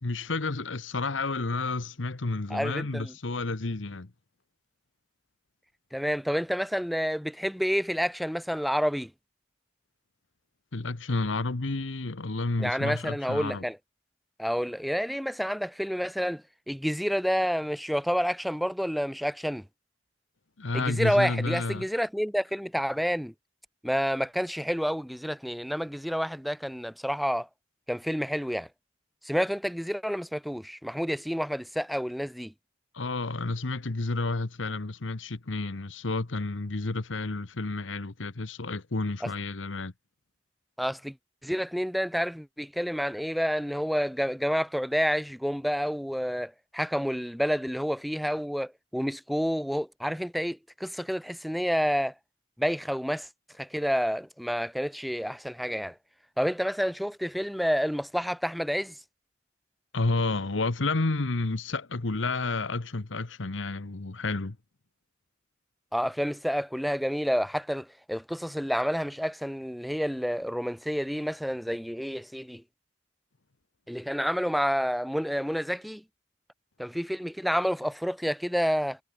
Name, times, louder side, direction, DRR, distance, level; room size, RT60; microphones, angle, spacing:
voice 1, 0.0-4.1 10.7-13.6 20.6-21.8 32.9-39.9 59.9-64.6, left 3 dB, 90° left, 1.2 m, -30 dB
voice 2, 2.5-3.1 5.9-9.1 12.6-13.8 14.4-19.6 20.7-23.3 23.8-27.5 27.9-28.7 29.2-32.5 39.2-39.3 40.8-41.1 41.4-52.1 52.6-53.3 53.6-56.0 56.4-59.0 65.9-72.6 73.9-76.0 76.8-79.0, equal, ahead, 0.3 m, -29 dB
head